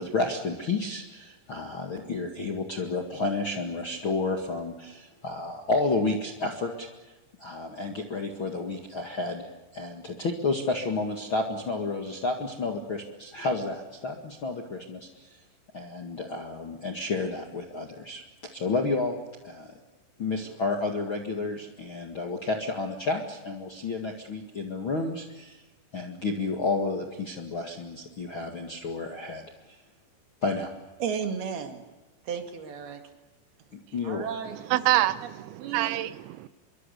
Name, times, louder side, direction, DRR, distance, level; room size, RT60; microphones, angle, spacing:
voice 1, 0.0-6.9 7.4-15.3 15.7-19.2 19.4-19.7 20.2-25.6 25.9-29.4 30.4-30.7 33.7-34.3, left 3 dB, 50° left, 2 dB, 1.5 m, -31 dB
voice 2, 31.0-31.8 32.2-33.0 34.0-35.0 35.6-36.0, right 7 dB, 60° right, 5 dB, 3.9 m, -34 dB
voice 3, 34.5-36.5, right 15 dB, 90° right, 14 dB, 3.3 m, -26 dB
25.5 x 23.5 x 6.9 m, 1.2 s
omnidirectional pair, 5.2 m